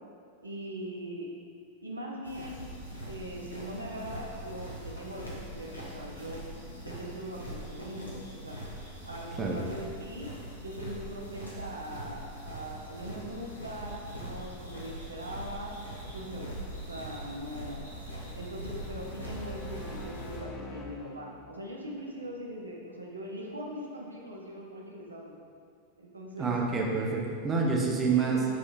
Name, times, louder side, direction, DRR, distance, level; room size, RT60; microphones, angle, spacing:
voice 1, 0.4-1.3 1.8-2.6 3.1-6.4 6.8-8.6 9.1-10.3 10.6-15.7 16.1-17.8 18.4-25.4 26.0-26.5 28.1-28.5, equal, 80° right, -2 dB, 0.6 m, -41 dB
sound 1, 2.2-20.4, right 1 dB, 85° left, 0.8 m, -42 dB
sound 2, 18.8-22.1, left 3 dB, 25° left, 0.3 m, -45 dB
voice 2, 26.4-28.4, right 4 dB, 20° right, -2 dB, 0.6 m, -27 dB
3.3 x 2.8 x 4.0 m, 2.3 s
figure-of-eight pair, 90°, 0 cm